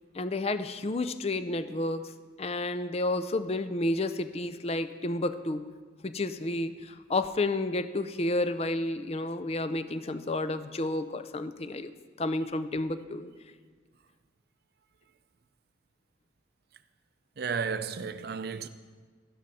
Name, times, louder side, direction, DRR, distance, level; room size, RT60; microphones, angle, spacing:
voice 1, 0.1-2.1 2.4-5.6 6.0-13.3, left 2 dB, 30° left, 0.5 m, -31 dB
voice 2, 17.4-18.7, right 6 dB, 55° right, 0.5 m, -33 dB
12.0 x 11.5 x 4.2 m
head